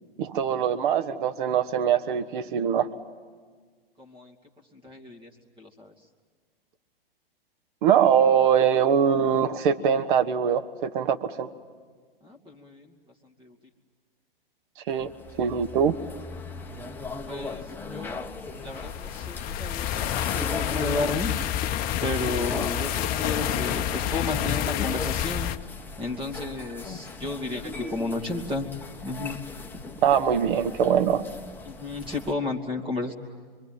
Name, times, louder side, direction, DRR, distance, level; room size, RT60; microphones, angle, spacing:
voice 1, 0.2-2.9 7.8-11.5 14.9-15.1 15.4-16.0 30.0-31.2, right 8 dB, 55° right, 10 dB, 1.5 m, -22 dB
voice 2, 4.0-4.3 4.7-5.3 5.6-5.9 12.2-12.9 13.4-13.5 17.3-17.6 17.9-18.3 18.6-21.3 22.0-25.5 26.0-28.7 29.0-29.4 31.6-33.1, left 2 dB, 15° right, 1 dB, 2.5 m, -33 dB
sound 1, 14.9-32.3, left 3 dB, 5° left, 1.2 m, -38 dB
sound 2, 18.7-25.6, left 11 dB, 30° left, 0.8 m, -29 dB
26.5 x 23.5 x 9.2 m, 1.6 s
hypercardioid pair, 110°, 30 cm